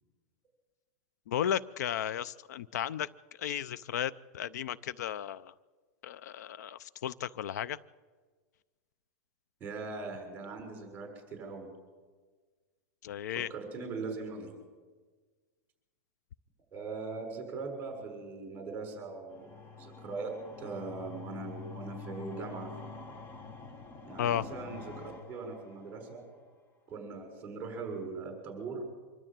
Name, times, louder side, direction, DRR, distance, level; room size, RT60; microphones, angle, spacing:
voice 1, 1.3-3.1 3.4-5.5 6.0-7.8 13.0-13.5 24.2-24.4, left 10 dB, 80° left, 19 dB, 0.5 m, -34 dB
voice 2, 9.6-11.7 13.5-14.5 16.7-22.7 24.1-26.2 26.9-28.8, right 4 dB, 20° right, 2 dB, 6.3 m, -40 dB
sound 1, 19.3-26.3, left 4 dB, 20° left, 1.1 m, -47 dB
25.0 x 12.5 x 8.9 m, 1.4 s
supercardioid pair, 155°, 9 cm